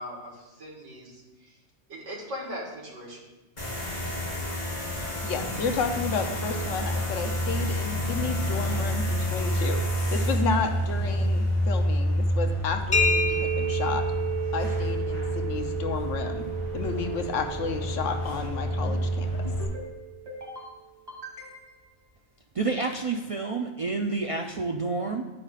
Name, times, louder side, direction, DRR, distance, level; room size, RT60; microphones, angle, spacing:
voice 1, 0.0-1.6 1.9-3.2, equal, 85° right, -4 dB, 2.2 m, -39 dB
sound 1, 3.6-19.7, equal, 40° left, 2.5 m, -29 dB
voice 2, 5.2-9.8 10.1-14.0 14.5-16.5 16.7-19.5, left 5 dB, 85° left, 5 dB, 1.1 m, -32 dB
sound 2, 12.9-20.5, right 2 dB, 25° left, 0.6 m, -31 dB
sound 3, 18.6-19.1 19.4-19.9 20.3-20.7 21.1-21.8, left 1 dB, 35° right, 2.4 m, -41 dB
voice 3, 22.6-25.2, right 3 dB, 60° right, 2 dB, 0.3 m, -29 dB
9.7 x 9.4 x 2.4 m, 1.1 s
omnidirectional pair, 1.2 m